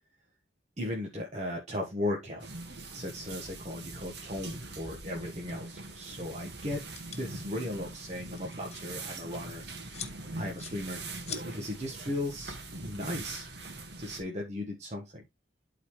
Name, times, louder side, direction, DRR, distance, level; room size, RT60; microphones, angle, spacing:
voice 1, 0.8-2.5 2.9-6.9 7.1-10.0 10.4-11.0 11.4-13.5 14.0-15.2, left 1 dB, 40° right, 1.4 m, -37 dB
sound 1, 2.4-14.2, right 2 dB, 75° right, 1.7 m, -42 dB
sound 2, 6.9-7.2 8.1-8.8 9.1-9.4 9.9-10.1 10.6-10.7 11.3-11.4, left 8 dB, 35° left, 1.2 m, -41 dB
12.0 x 4.1 x 3.2 m
head